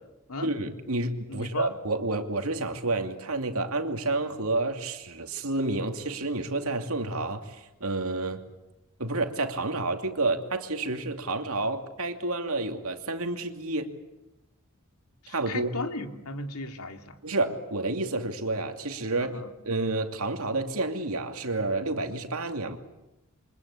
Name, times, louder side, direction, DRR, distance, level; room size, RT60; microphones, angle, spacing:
voice 1, 0.4-8.4 9.0-13.9 15.3-15.7 17.2-19.4 19.6-22.8, right 2 dB, 75° right, 5 dB, 2.7 m, -29 dB
voice 2, 1.3-1.7 15.2-17.2 19.1-19.5, left 2 dB, 85° left, 6 dB, 2.6 m, -36 dB
28.0 x 25.0 x 8.6 m, 0.96 s
head